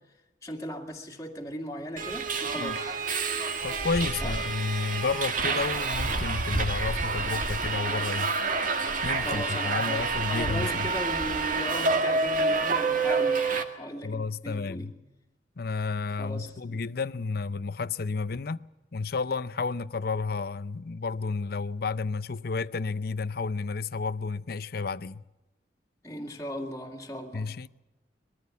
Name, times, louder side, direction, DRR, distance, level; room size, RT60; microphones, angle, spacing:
voice 1, 0.4-2.9 4.2-4.4 9.2-13.5 13.8-15.0 16.2-16.9 26.0-27.6, equal, 15° left, 2.1 m, -37 dB
Subway metro underground, 2.0-13.6, right 4 dB, 45° right, 1.9 m, -28 dB
voice 2, 3.6-8.3 9.0-10.9 14.0-14.9 15.6-18.7 18.9-25.2 27.3-27.7, left 4 dB, 55° left, 0.6 m, -31 dB
22.0 x 14.0 x 8.3 m
head